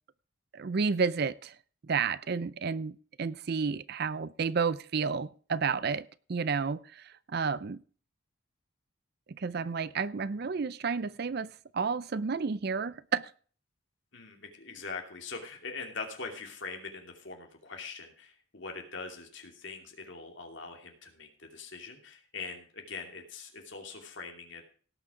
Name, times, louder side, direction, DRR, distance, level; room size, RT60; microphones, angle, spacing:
voice 1, 0.5-1.5 1.9-7.0 7.3-7.8 9.4-13.2, right 5 dB, 50° right, 18 dB, 0.4 m, -31 dB
voice 2, 14.1-24.6, left 4 dB, 60° left, 3 dB, 2.8 m, -42 dB
18.0 x 6.3 x 5.0 m, 0.42 s
head